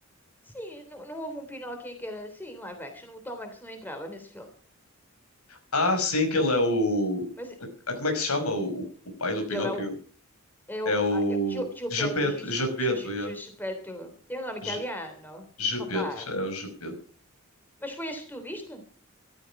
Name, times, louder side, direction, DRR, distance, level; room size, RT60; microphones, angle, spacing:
voice 1, 0.5-4.5 7.4-7.5 9.5-9.8 10.7-12.4 12.8-15.4 15.7-16.3 17.8-18.8, equal, 10° left, 6 dB, 3.3 m, -37 dB
voice 2, 5.7-7.2 8.0-8.8 9.2-9.9 10.9-11.7 11.9-13.3 14.6-14.8 15.6-16.9, left 1 dB, 90° left, 6 dB, 5.4 m, -27 dB
15.0 x 13.5 x 6.0 m, 0.43 s
head